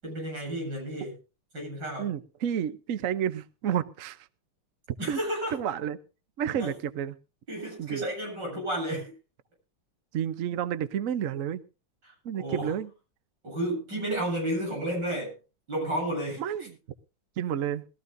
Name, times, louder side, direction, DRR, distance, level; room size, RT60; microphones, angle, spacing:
voice 1, 0.0-1.2 1.5-2.1 5.0-5.5 6.6-6.7 7.5-9.1 12.0-12.7 13.4-15.3 15.7-16.4, right 1 dB, 50° right, -2 dB, 8.8 m, -32 dB
voice 2, 2.0-4.2 5.1-5.2 5.5-6.0 6.4-7.2 7.8-8.0 10.1-11.6 12.2-12.9 16.4-16.8 17.4-17.8, right 9 dB, 65° right, 12 dB, 0.8 m, -30 dB
21.0 x 13.5 x 2.6 m, 0.31 s
omnidirectional pair, 2.4 m